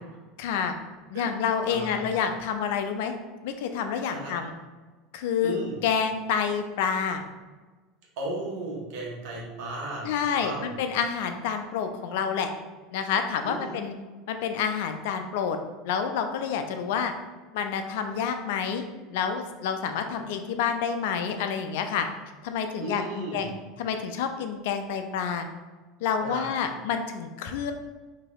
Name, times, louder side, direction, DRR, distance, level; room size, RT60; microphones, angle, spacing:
voice 1, 0.4-0.7 1.1-3.1 3.4-4.5 5.1-7.2 10.0-12.5 12.9-13.9 14.3-15.6 15.8-17.1 17.5-18.9 19.1-22.1 22.4-23.5 23.8-25.5 26.0-27.7, left 7 dB, 70° left, 6 dB, 0.3 m, -28 dB
voice 2, 1.7-2.0 4.0-4.3 5.4-5.7 8.2-10.8 13.4-13.7 22.8-23.5 26.2-26.4, right 2 dB, 65° right, -2 dB, 1.0 m, -35 dB
4.0 x 2.7 x 2.3 m, 1.3 s
hypercardioid pair, 80°, 0 cm